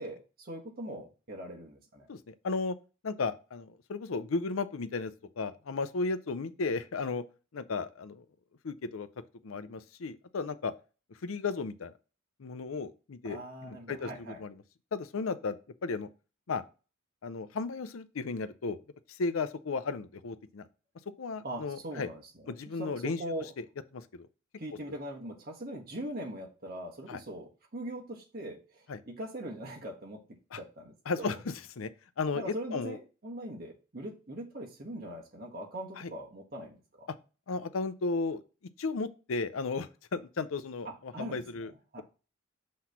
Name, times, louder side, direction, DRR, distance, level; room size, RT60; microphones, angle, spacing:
voice 1, 0.0-2.1 13.3-14.4 21.4-22.5 22.8-23.5 24.6-30.2 30.5-31.4 32.3-37.1 40.8-41.7 41.9-42.0, right 1 dB, 45° right, 1.4 m, -41 dB
voice 2, 2.1-2.7 3.0-7.2 7.5-8.2 8.6-9.1 9.4-10.7 11.2-11.9 12.4-14.6 14.9-15.6 15.8-16.1 16.5-16.6 17.2-18.8 19.1-20.7 21.2-22.1 22.5-23.2 23.6-23.7 23.9-24.3 27.1-27.2 28.9-29.0 30.5-30.6 31.1-31.9 32.2-33.0 36.0-36.1 37.5-38.4 38.8-41.7, left 4 dB, 80° left, 0.6 m, -34 dB
5.9 x 3.1 x 5.8 m
head